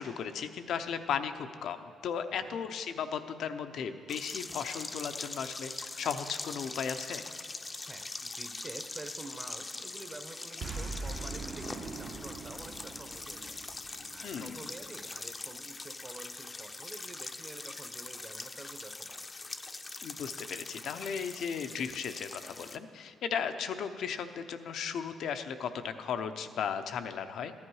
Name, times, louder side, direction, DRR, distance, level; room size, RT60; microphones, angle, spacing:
voice 1, 0.0-7.2 14.2-14.6 20.0-27.5, left 7 dB, 70° left, 9 dB, 0.7 m, -36 dB
sound 1, 4.1-22.8, left 3 dB, 25° left, 0.6 m, -42 dB
voice 2, 7.9-13.6 14.1-19.3, right 2 dB, 25° right, 7 dB, 0.9 m, -48 dB
Boom, 10.6-15.0, right 3 dB, 55° right, 1.0 m, -42 dB
14.5 x 10.5 x 4.8 m, 2.4 s
cardioid pair, 90°, 0 cm